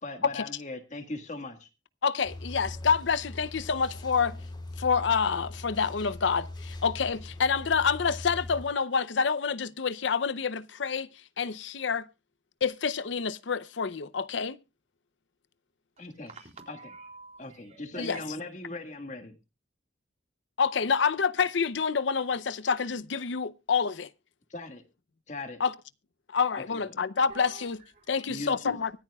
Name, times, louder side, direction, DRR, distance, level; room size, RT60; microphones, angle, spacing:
voice 1, 0.0-1.7 16.0-16.3 16.7-16.8 17.4-19.4 24.5-24.8 25.3-25.6 26.7-26.8 28.3-28.8, left 2 dB, 40° left, 1.7 m, -39 dB
voice 2, 2.0-4.4 4.8-11.1 11.4-12.1 12.6-14.6 18.0-18.2 20.6-24.1 25.6-25.7 26.3-27.8 28.1-28.9, left 6 dB, 75° left, 0.7 m, -27 dB
sound 1, 2.2-8.7, left 2 dB, 25° left, 3.8 m, -41 dB
voice 3, 16.0-18.2 27.3-28.1, right 3 dB, 40° right, 4.1 m, -49 dB
24.5 x 8.8 x 2.3 m
head